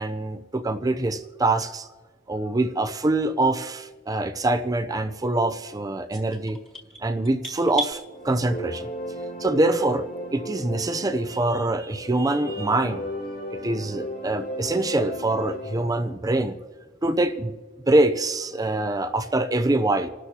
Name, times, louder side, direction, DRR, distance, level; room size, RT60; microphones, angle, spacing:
voice 1, 0.0-1.9 2.3-6.6 7.0-8.9 9.4-10.1 10.3-13.1 13.6-16.6 17.0-17.6 17.9-20.1, right 2 dB, 20° right, 9 dB, 0.5 m, -24 dB
sound 1, 6.1-8.0, right 1 dB, 5° left, 1.8 m, -34 dB
sound 2, 8.0-15.9, equal, 55° left, 5.6 m, -35 dB
29.0 x 12.5 x 2.8 m, 1.3 s
head